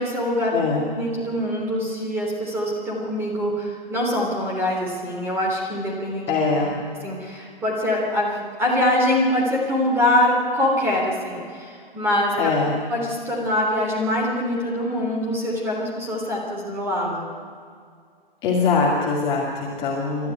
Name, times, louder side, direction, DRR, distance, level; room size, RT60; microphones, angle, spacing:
voice 1, 0.0-0.6 0.9-6.3 7.0-12.5 12.9-17.3, left 1 dB, 10° right, -1 dB, 3.4 m, -24 dB
voice 2, 6.3-6.8 12.4-12.7 18.4-20.3, left 4 dB, 15° left, -3 dB, 2.3 m, -22 dB
28.0 x 13.0 x 9.2 m, 2.2 s
hypercardioid pair, 165°, 29 cm